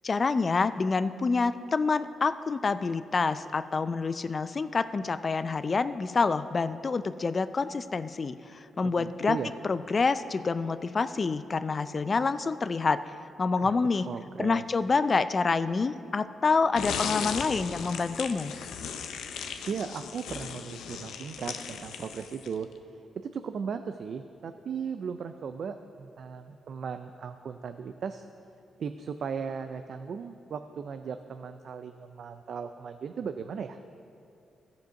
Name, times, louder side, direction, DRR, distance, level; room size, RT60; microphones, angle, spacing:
voice 1, 0.0-9.4 9.6-13.0 13.4-14.1 14.4-18.5, left 4 dB, 40° left, 13 dB, 0.4 m, -27 dB
voice 2, 8.8-9.5 13.6-13.8 14.1-14.6 19.7-22.7 23.2-28.2 28.8-33.8, right 6 dB, 65° right, 8 dB, 0.4 m, -37 dB
sound 1, 16.7-22.6, left 7 dB, 90° left, 0.6 m, -36 dB
14.5 x 5.3 x 5.7 m, 2.6 s
cardioid pair, 75°, 0 cm